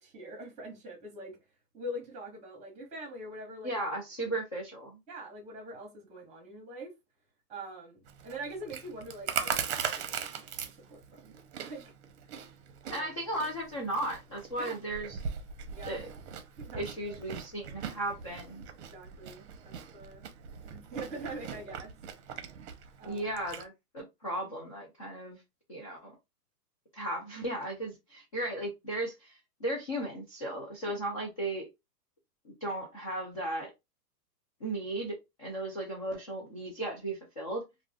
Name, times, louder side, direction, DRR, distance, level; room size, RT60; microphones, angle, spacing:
voice 1, 0.0-1.4 1.7-3.8 4.2-4.4 5.1-6.9 7.5-11.3 11.6-11.9 12.3-12.5 12.8-13.1 14.6-14.8 15.7-16.1 16.6-17.2 18.9-20.2 20.6-21.9 23.0-23.3 30.9-31.0, right 1 dB, 15° right, 1.1 m, -44 dB
voice 2, 3.6-5.0 12.9-15.2 15.9-16.1 16.8-18.7 23.0-25.4 25.7-26.1 26.9-31.7 32.4-33.7 34.6-37.6, right 1 dB, 25° left, 0.3 m, -36 dB
Chewing mastication, 8.1-23.6, right 7 dB, 45° right, 0.7 m, -40 dB
2.4 x 2.3 x 3.5 m
hypercardioid pair, 150°, 48 cm